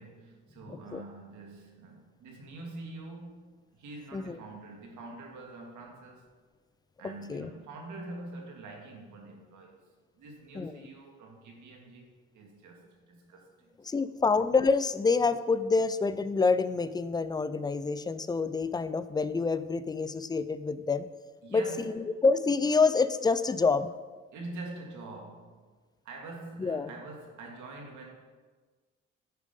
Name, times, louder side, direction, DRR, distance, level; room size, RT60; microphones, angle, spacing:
voice 1, 0.0-3.4 3.7-6.3 7.0-9.8 10.1-13.8 21.4-22.1 24.3-25.6 26.0-28.1, right 2 dB, 80° right, 1 dB, 1.9 m, -45 dB
voice 2, 13.8-21.1 21.5-23.9 26.6-26.9, left 4 dB, 15° left, 13 dB, 0.4 m, -27 dB
10.0 x 5.2 x 5.3 m, 1.4 s
cardioid pair, 90°, 30 cm